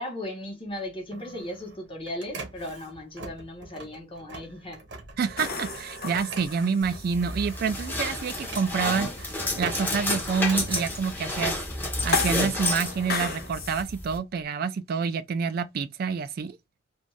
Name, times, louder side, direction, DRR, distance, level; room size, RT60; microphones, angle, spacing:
voice 1, 0.0-4.8, left 1 dB, 30° left, 1.1 m, -37 dB
Printer, 0.7-12.1 12.6-14.4, right 3 dB, 80° right, 0.9 m, -43 dB
voice 2, 5.2-9.3 9.6-11.6 12.0-16.6, right 5 dB, 55° right, 0.3 m, -28 dB
sound 1, 5.4-13.8, left 5 dB, 60° left, 0.8 m, -36 dB
sound 2, 6.8-14.2, left 2 dB, 10° left, 0.8 m, -31 dB
2.6 x 2.2 x 3.1 m
head